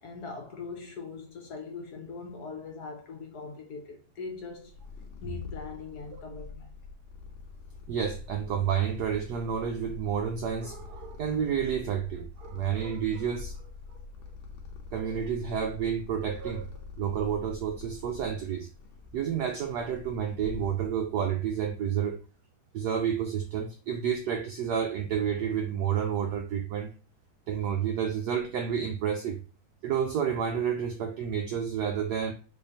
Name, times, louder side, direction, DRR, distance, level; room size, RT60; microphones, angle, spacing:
voice 1, 0.0-4.7 5.2-6.7, left 4 dB, 65° left, 1.1 m, -41 dB
Purr, 4.3-21.2, left 4 dB, 80° left, 1.6 m, -45 dB
voice 2, 7.9-13.7 14.9-16.7 17.0-18.7 19.1-22.2 22.7-26.9 27.5-29.4 29.8-32.3, right 8 dB, 80° right, 0.9 m, -30 dB
3.7 x 3.4 x 2.6 m
omnidirectional pair, 2.2 m